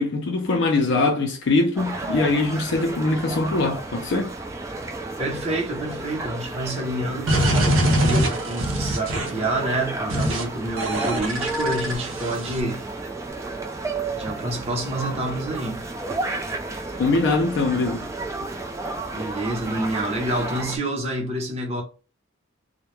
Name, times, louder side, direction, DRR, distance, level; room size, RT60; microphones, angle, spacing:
voice 1, 0.0-4.3 17.0-18.1, left 3 dB, 60° left, 0.5 m, -22 dB
sound 1, 1.8-20.8, right 2 dB, 15° right, 0.3 m, -32 dB
voice 2, 5.2-12.9 14.1-15.9 19.1-21.8, right 1 dB, 30° right, 0.7 m, -28 dB
sound 2, 7.3-9.5 10.1-10.4 10.8-12.6, equal, 85° right, 0.6 m, -23 dB
2.2 x 2.1 x 3.0 m
head